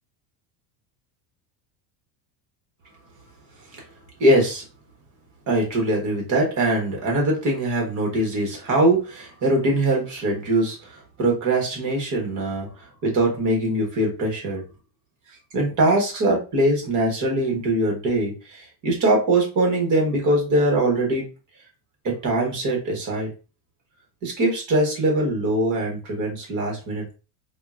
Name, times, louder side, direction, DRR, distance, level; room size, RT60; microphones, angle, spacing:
voice 1, 4.2-4.6 5.5-12.7 13.0-14.6 15.5-21.2 22.0-23.3 24.2-27.1, right 1 dB, 40° right, 0 dB, 1.3 m, -22 dB
3.6 x 2.3 x 2.4 m, 0.33 s
cardioid pair, 155°, 47 cm